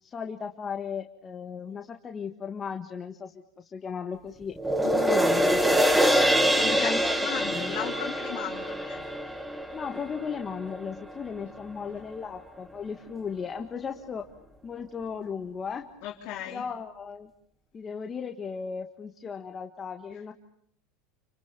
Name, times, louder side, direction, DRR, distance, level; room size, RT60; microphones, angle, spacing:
voice 1, 0.0-4.6 5.0-5.7 6.6-7.1 7.5-7.8 9.7-14.3 14.6-15.9 16.5-17.3 17.7-20.3, left 6 dB, 25° left, 4 dB, 1.7 m, -36 dB
sound 1, 4.6-11.1 11.6-11.7, equal, 5° right, 2.0 m, -25 dB
voice 2, 6.5-9.0 16.0-16.6, left 12 dB, 55° left, -2 dB, 3.6 m, -36 dB
28.5 x 24.5 x 6.9 m, 0.69 s
supercardioid pair, 115°, 0 cm